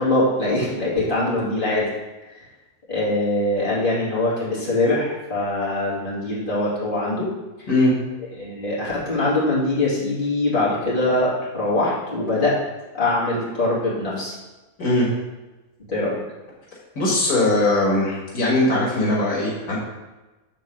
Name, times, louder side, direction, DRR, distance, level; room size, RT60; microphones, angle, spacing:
voice 1, 0.0-1.9 2.3-2.4 2.9-7.3 8.3-12.6 12.9-14.3 15.9-16.1, left 2 dB, 35° left, -8 dB, 3.2 m, -22 dB
voice 2, 17.0-19.8, left 1 dB, 85° left, -4 dB, 2.3 m, -20 dB
9.5 x 4.0 x 6.3 m, 1.1 s
omnidirectional pair, 1.5 m